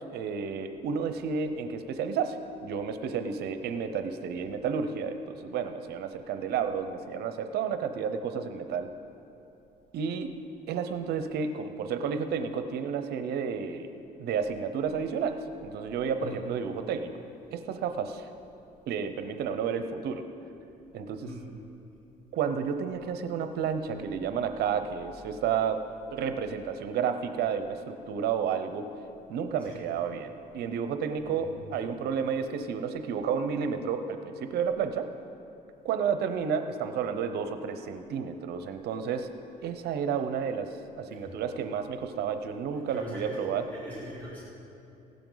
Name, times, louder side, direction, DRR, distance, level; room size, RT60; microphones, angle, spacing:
voice 1, 0.0-2.4 2.6-8.9 9.9-10.3 10.7-13.9 14.2-15.4 15.6-17.1 17.5-18.3 18.9-20.2 20.9-21.3 22.3-25.8 26.1-28.9 29.3-35.1 35.8-39.3 39.6-40.7 41.0-43.7, right 6 dB, 70° right, 8 dB, 0.7 m, -31 dB
voice 2, 42.9-44.4, equal, 10° left, -9 dB, 3.0 m, -41 dB
16.0 x 12.0 x 3.9 m, 2.9 s
cardioid pair, 110°, 17 cm